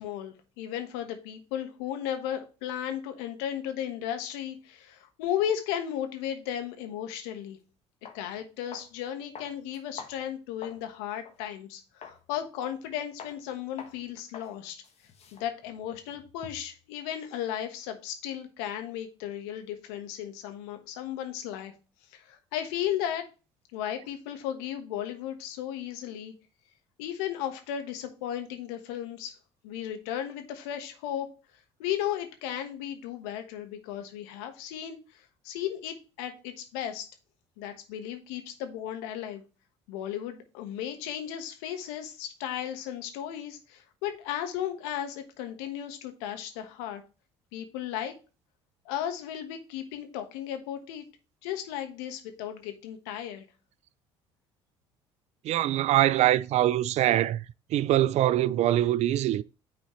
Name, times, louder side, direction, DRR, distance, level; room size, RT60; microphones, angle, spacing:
voice 1, 0.0-7.6 8.1-14.8 15.3-21.7 22.1-23.2 23.7-26.3 27.0-29.4 29.6-31.3 31.8-35.0 35.4-37.0 37.6-39.4 39.9-47.0 47.5-48.1 48.8-51.0 51.4-53.4, left 10 dB, 75° left, 1.2 m, -35 dB
sound 1, 7.5-7.6 8.0-8.2 8.7-9.0 9.3-10.9 11.2-11.4 12.0-12.2 12.6-12.9 13.2-13.4 13.8-14.0 14.3-14.5 14.8-16.8, left 6 dB, 50° left, 1.5 m, -46 dB
voice 2, 55.4-57.4 57.7-59.4, right 13 dB, 55° right, 0.4 m, -23 dB
9.5 x 4.2 x 3.1 m
hypercardioid pair, 60°, 14 cm